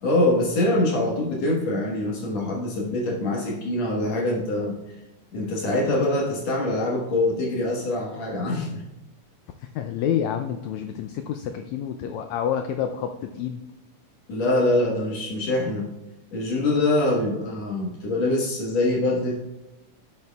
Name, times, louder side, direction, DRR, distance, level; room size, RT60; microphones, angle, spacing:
voice 1, 0.0-4.8 5.3-8.8 14.3-15.9 16.3-19.4, left 2 dB, 60° left, -3 dB, 2.4 m, -24 dB
voice 2, 9.8-13.6, left 9 dB, 80° left, 7 dB, 1.6 m, -28 dB
12.0 x 9.4 x 2.3 m, 0.97 s
omnidirectional pair, 3.7 m